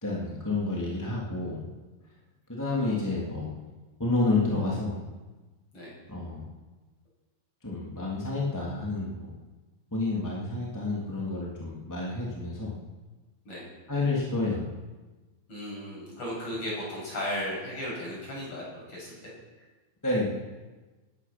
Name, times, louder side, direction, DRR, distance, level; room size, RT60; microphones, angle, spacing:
voice 1, 0.0-1.6 2.5-3.5 4.0-5.0 6.1-6.4 7.6-9.3 9.9-12.7 13.9-14.6 20.0-20.3, left 2 dB, 5° left, -4 dB, 1.7 m, -29 dB
voice 2, 15.5-19.3, left 1 dB, 30° left, -5 dB, 8.3 m, -35 dB
19.0 x 11.0 x 6.1 m, 1.2 s
omnidirectional pair, 5.4 m